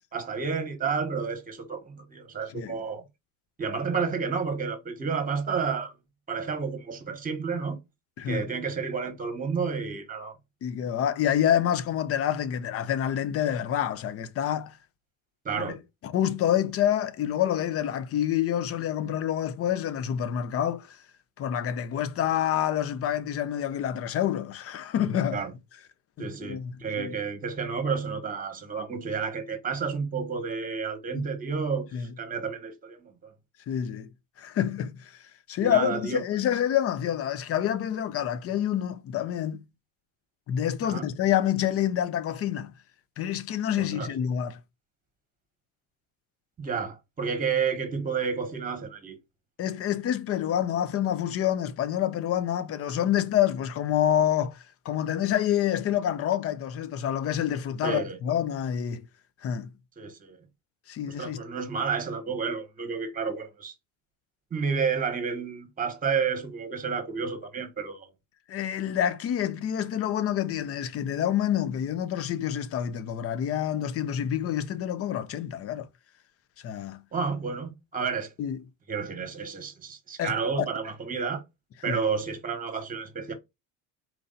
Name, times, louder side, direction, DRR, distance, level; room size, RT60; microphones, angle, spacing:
voice 1, 0.1-3.0 3.6-5.9 6.3-7.8 8.3-10.3 15.4-15.8 25.3-25.5 26.2-33.3 35.6-36.2 40.8-41.1 43.8-44.1 46.6-49.2 57.8-58.2 60.0-60.4 61.1-63.7 64.5-68.1 77.1-78.3 78.9-81.4 81.8-83.3, right 5 dB, 25° right, 1.2 m, -31 dB
voice 2, 10.6-14.8 15.6-15.8 16.0-21.0 21.4-25.4 26.2-27.2 31.1-31.3 31.9-32.1 33.7-34.1 34.4-35.2 35.5-39.6 40.5-42.7 43.2-44.6 49.6-59.0 59.4-59.7 60.9-61.4 68.5-75.9 76.6-77.0 78.4-78.6 80.2-80.4 81.9-82.0, left 10 dB, 45° left, 0.6 m, -27 dB
4.5 x 2.6 x 3.9 m
cardioid pair, 120°, 33 cm